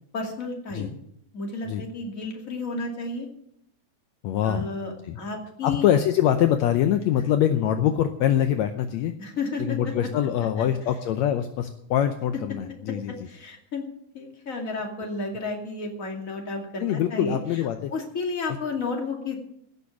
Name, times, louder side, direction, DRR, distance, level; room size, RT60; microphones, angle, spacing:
voice 1, 0.1-0.9 1.3-3.3 4.4-5.8 9.2-9.8 10.6-10.7 13.1-13.8 14.1-17.4 17.9-19.3, left 3 dB, 30° left, 1 dB, 2.6 m, -32 dB
voice 2, 4.2-4.7 5.0-5.2 5.6-9.1 9.6-13.1 16.8-17.9, left 10 dB, 75° left, 8 dB, 1.9 m, -24 dB
16.5 x 6.9 x 7.1 m, 0.70 s
omnidirectional pair, 3.5 m